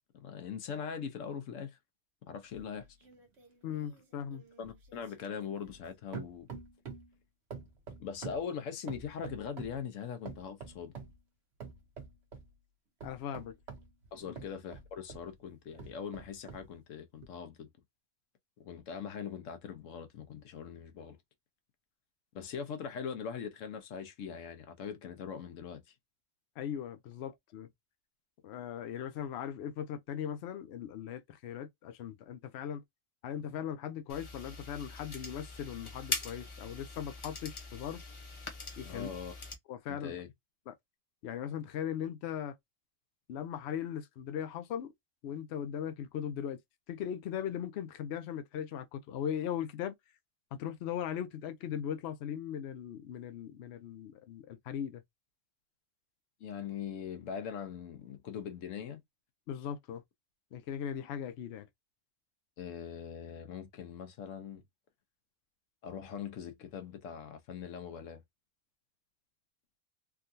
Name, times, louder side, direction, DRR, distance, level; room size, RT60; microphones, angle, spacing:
voice 1, 0.2-1.8 2.3-2.9 4.6-6.5 8.0-10.9 14.1-17.7 18.6-21.2 22.3-25.9 38.8-39.4 39.9-40.3 56.4-59.0 62.6-64.6 65.8-68.2, left 7 dB, 85° left, 1.1 m, -41 dB
sound 1, 2.5-5.9 6.1-7.1 7.5-9.8 10.3-11.2 11.6-12.5 13.0-15.3 15.8-16.7 17.2-17.3, right 6 dB, 60° right, 1.2 m, -47 dB
voice 2, 3.6-4.4 13.0-13.5 26.6-27.7 28.4-32.8 33.2-38.0 38.8-39.1 39.7-40.2 40.7-40.8 41.2-42.6 43.3-44.9 45.2-46.6 46.9-49.9 50.5-55.0 59.5-60.0 60.5-61.7, left 9 dB, 65° left, 0.8 m, -39 dB
sound 2, 34.1-39.6, left 3 dB, 30° left, 0.7 m, -42 dB
3.6 x 2.3 x 2.6 m
omnidirectional pair, 1.3 m